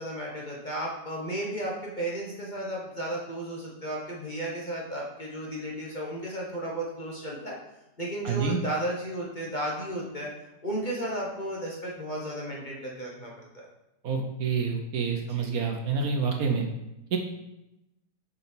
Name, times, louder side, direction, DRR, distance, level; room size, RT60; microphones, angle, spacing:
voice 1, 0.0-7.6 8.0-10.3 10.6-13.7 15.3-15.4, right 1 dB, 30° left, -3 dB, 1.2 m, -34 dB
voice 2, 8.2-8.6 14.0-16.6 17.1-17.2, right 5 dB, 65° right, 3 dB, 1.2 m, -27 dB
6.9 x 5.5 x 4.4 m, 0.90 s
omnidirectional pair, 1.8 m